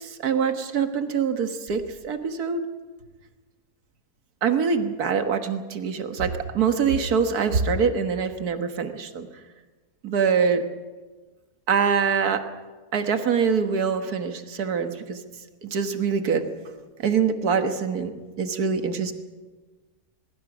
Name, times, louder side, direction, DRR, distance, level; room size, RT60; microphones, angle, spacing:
voice 1, 0.0-2.6 4.4-9.3 10.0-10.6 11.7-12.4 12.9-15.2 15.6-16.5 17.0-18.1 18.4-19.1, right 6 dB, 70° right, 7 dB, 1.9 m, -24 dB
23.0 x 22.5 x 6.2 m, 1.3 s
omnidirectional pair, 1.7 m